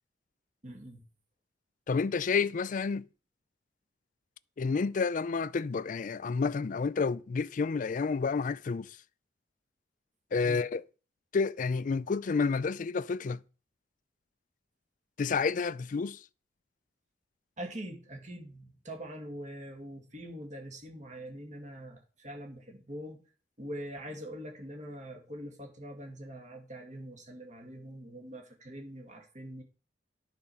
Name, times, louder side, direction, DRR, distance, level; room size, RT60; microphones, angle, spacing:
voice 1, 0.6-1.0 10.4-10.6 17.6-23.2 23.6-29.6, equal, 40° right, 2.3 m, -43 dB
voice 2, 1.9-3.1 4.6-9.0 10.3-10.8 11.3-13.4 15.2-16.2, left 5 dB, 45° left, 0.4 m, -30 dB
11.0 x 5.0 x 5.6 m
head